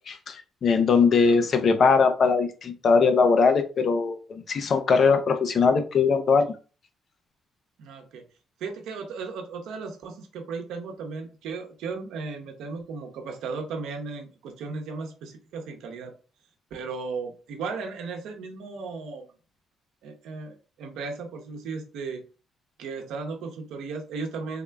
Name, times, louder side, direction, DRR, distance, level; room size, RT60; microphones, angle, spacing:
voice 1, 0.1-6.6, left 5 dB, 55° left, 8 dB, 0.6 m, -21 dB
voice 2, 7.8-8.2 8.6-16.1 16.7-19.3 20.0-22.2 22.8-24.6, right 4 dB, 85° right, 3 dB, 0.8 m, -35 dB
3.6 x 2.4 x 3.3 m, 0.35 s
cardioid pair, 90°, 0 cm